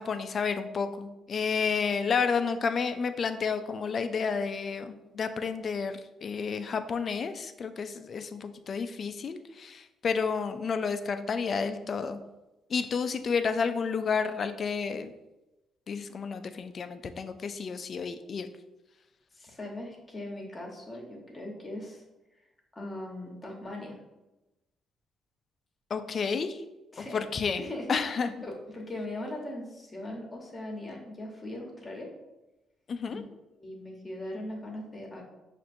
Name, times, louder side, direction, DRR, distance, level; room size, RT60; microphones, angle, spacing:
voice 1, 0.0-12.2 12.7-15.1 15.9-18.5 25.9-26.6 27.1-27.6 27.9-28.3 32.9-33.2, left 5 dB, 50° left, 9 dB, 0.3 m, -31 dB
voice 2, 19.3-22.0 22.7-24.0 26.9-27.2 27.6-32.1 33.1-33.2 33.6-35.2, left 1 dB, 25° left, 0 dB, 1.0 m, -40 dB
5.9 x 2.5 x 2.6 m, 1.0 s
cardioid pair, 90°, 0 cm